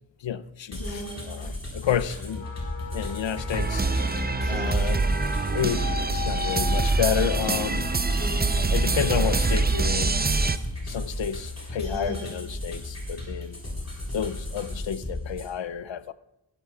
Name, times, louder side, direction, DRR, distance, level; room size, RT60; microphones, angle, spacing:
voice 1, 0.2-2.5 2.9-3.8 4.5-5.0 5.5-5.9 6.1-7.9 8.7-10.2 10.8-13.6 14.1-16.1, left 8 dB, 65° left, 0.6 m, -30 dB
sound 1, 0.7-15.5, left 1 dB, 30° left, 4.4 m, -35 dB
Wind instrument woodwind instrument, 2.3-10.0, left 6 dB, 85° left, 1.6 m, -39 dB
sound 2, 3.5-10.6, right 3 dB, 20° right, 0.5 m, -25 dB
15.5 x 13.5 x 2.4 m
wide cardioid pair, 50°, 49 cm